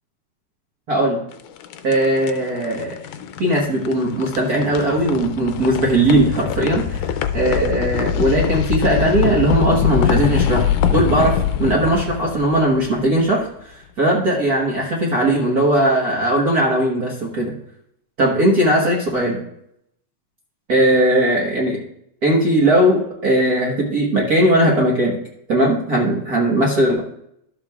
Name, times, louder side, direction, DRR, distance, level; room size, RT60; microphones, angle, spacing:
voice 1, 0.9-1.2 1.8-3.0 3.4-7.0 7.3-17.6 18.2-19.4 20.7-21.8 22.2-25.2 25.5-27.0, right 1 dB, 50° right, -2 dB, 1.2 m, -18 dB
sound 1, 1.3-13.4, left 8 dB, 90° left, 2.0 m, -23 dB
12.0 x 7.5 x 2.3 m, 0.74 s
omnidirectional pair, 3.4 m